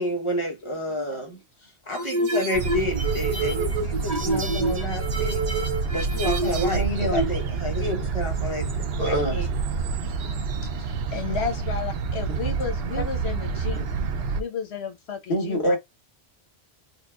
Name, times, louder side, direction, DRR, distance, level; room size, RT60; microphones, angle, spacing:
voice 1, 0.0-1.4 1.9-5.5 5.9-8.7 9.0-9.2, left 1 dB, 30° left, 1.1 m, -30 dB
sound 1, 1.9-6.8, right 2 dB, 45° right, 0.9 m, -28 dB
sound 2, 2.5-14.4, right 5 dB, 70° right, 0.8 m, -28 dB
voice 2, 6.4-7.4 9.0-9.5 12.3-12.4 15.3-15.8, equal, 55° left, 1.8 m, -26 dB
voice 3, 10.8-13.8 14.3-15.8, left 6 dB, 75° left, 1.3 m, -32 dB
4.5 x 2.3 x 2.3 m
omnidirectional pair, 1.1 m